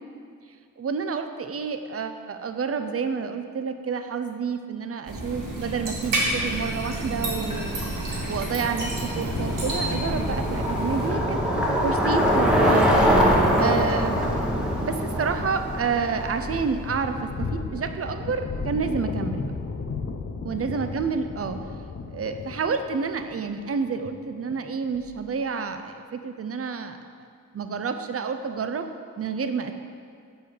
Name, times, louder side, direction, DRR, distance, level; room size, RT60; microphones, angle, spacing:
voice 1, 0.8-7.8 8.3-11.4 11.8-12.9 13.6-14.2 14.8-19.5 20.4-21.6 22.1-27.0 27.5-28.9 29.2-29.7, right 5 dB, 45° right, 8 dB, 0.6 m, -29 dB
sound 1, 5.1-11.1, right 1 dB, 80° right, 2.0 m, -30 dB
Bicycle, 6.3-17.2, equal, ahead, 1.1 m, -24 dB
sound 2, 9.3-25.5, left 4 dB, 45° left, 0.6 m, -36 dB
7.9 x 5.0 x 6.5 m, 2.2 s
wide cardioid pair, 120°, 32 cm